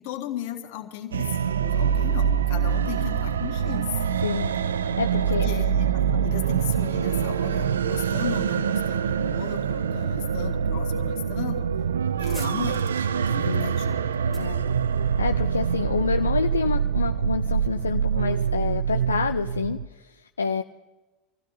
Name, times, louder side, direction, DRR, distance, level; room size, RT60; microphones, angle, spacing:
voice 1, 0.0-4.0 5.3-11.7 12.2-14.5, left 11 dB, 55° left, 3 dB, 1.8 m, -36 dB
sound 1, 1.1-19.9, right 7 dB, 70° right, 0.4 m, -25 dB
voice 2, 4.2-5.5 13.4-13.7 14.4-14.7 15.2-20.6, left 5 dB, 80° left, 7 dB, 0.4 m, -28 dB
sound 2, 12.1-15.5, equal, ahead, 2.3 m, -47 dB
27.0 x 15.5 x 2.7 m, 1.1 s
figure-of-eight pair, 80°, 0 cm